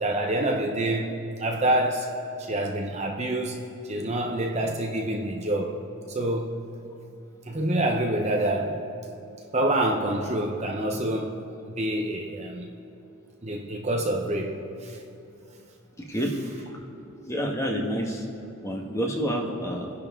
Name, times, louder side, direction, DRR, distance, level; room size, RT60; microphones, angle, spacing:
voice 1, 0.0-5.8 6.1-6.6 7.5-8.9 9.5-11.4 11.7-12.7 13.4-15.0, right 1 dB, 30° right, 2 dB, 0.8 m, -27 dB
voice 2, 16.0-16.3 17.3-18.2 18.6-19.9, equal, 15° left, 1 dB, 1.5 m, -28 dB
27.0 x 10.5 x 3.7 m, 2.8 s
head